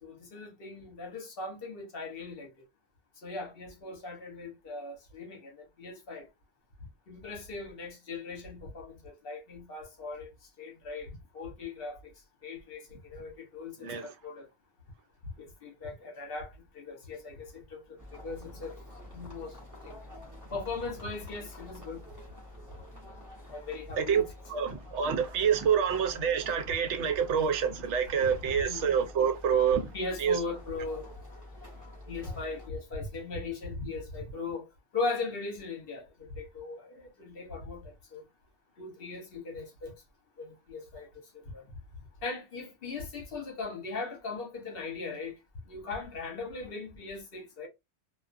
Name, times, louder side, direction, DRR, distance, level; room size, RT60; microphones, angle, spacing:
voice 1, 0.0-2.5 3.2-6.3 7.1-10.3 10.6-12.1 12.4-14.5 15.4-18.7 19.1-19.5 19.8-20.0 20.5-22.0 23.5-24.2 28.7-28.9 29.9-31.1 32.1-34.6 34.9-36.1 36.4-38.2 38.8-39.9 40.4-41.6 42.2-45.3 45.7-47.7, left 3 dB, 60° left, 1.0 m, -39 dB
sound 1, 18.0-32.7, left 1 dB, 15° right, 1.0 m, -48 dB
voice 2, 24.5-29.9 30.2-30.4, right 7 dB, 85° right, 0.9 m, -27 dB
2.4 x 2.4 x 2.4 m
omnidirectional pair, 1.2 m